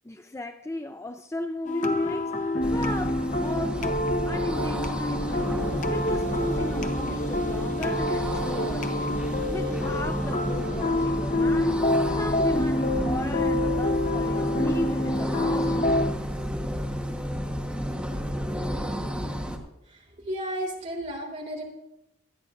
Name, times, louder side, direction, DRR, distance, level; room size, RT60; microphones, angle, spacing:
voice 1, 0.0-9.1 9.5-11.8 12.2-16.3, left 1 dB, 15° left, 0.3 m, -36 dB
sound 1, 1.6-16.1, left 1 dB, 40° left, 0.8 m, -27 dB
sound 2, 2.6-19.6, equal, 5° right, 1.3 m, -31 dB
voice 2, 19.9-21.6, equal, 35° right, 3.5 m, -33 dB
24.5 x 9.4 x 2.6 m
head